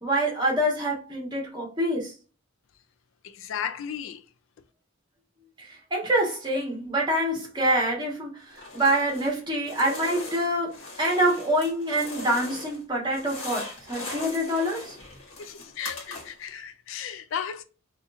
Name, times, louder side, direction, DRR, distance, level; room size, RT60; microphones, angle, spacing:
voice 1, 0.0-2.1 5.6-10.7 11.0-15.0, right 1 dB, 20° right, 1.2 m, -26 dB
voice 2, 3.2-4.2 15.4-17.6, left 8 dB, 70° left, 0.3 m, -35 dB
sound 1, 8.5-9.4 9.6-12.8 13.1-16.5, left 3 dB, 90° left, 1.2 m, -40 dB
4.1 x 2.5 x 2.3 m
head